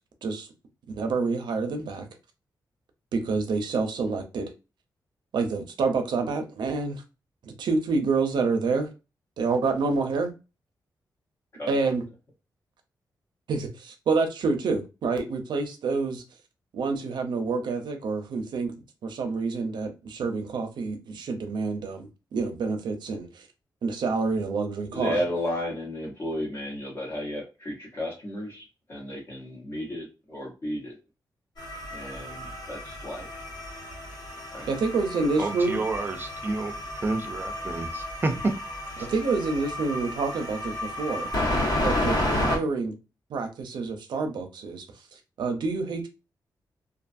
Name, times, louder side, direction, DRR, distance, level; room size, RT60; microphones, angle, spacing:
voice 1, 0.9-2.1 3.1-4.5 5.3-7.0 7.4-8.9 9.4-10.3 11.7-12.0 13.5-16.2 16.7-18.7 19.0-23.5 23.8-25.2 34.7-35.8 39.0-40.7 41.0-41.3 41.8-42.9 43.3-44.8 45.4-46.1, right 4 dB, 80° right, 0.6 m, -27 dB
voice 2, 24.9-31.0 31.9-33.3 34.5-34.7, left 1 dB, 35° left, 0.9 m, -33 dB
sound 1, 31.6-42.6, left 1 dB, 75° left, 1.4 m, -31 dB
voice 3, 35.4-36.7 37.0-38.5 39.0-39.1, right 3 dB, 25° right, 0.5 m, -29 dB
2.5 x 2.3 x 2.5 m
wide cardioid pair, 150°, 8 cm